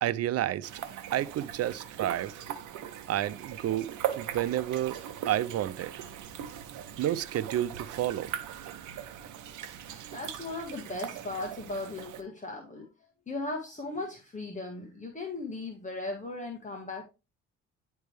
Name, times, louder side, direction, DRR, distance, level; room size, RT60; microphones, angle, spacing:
voice 1, 0.0-0.7 1.1-2.4 3.1-3.9 4.2-5.0 5.2-5.9 7.0-8.3, right 12 dB, 55° right, 0.6 m, -30 dB
sound 1, 0.6-12.2, right 10 dB, 75° right, 0.9 m, -40 dB
voice 2, 10.1-12.9 13.3-17.0, left 2 dB, 25° left, 1.6 m, -37 dB
10.0 x 3.4 x 3.3 m
supercardioid pair, 70°, 30 cm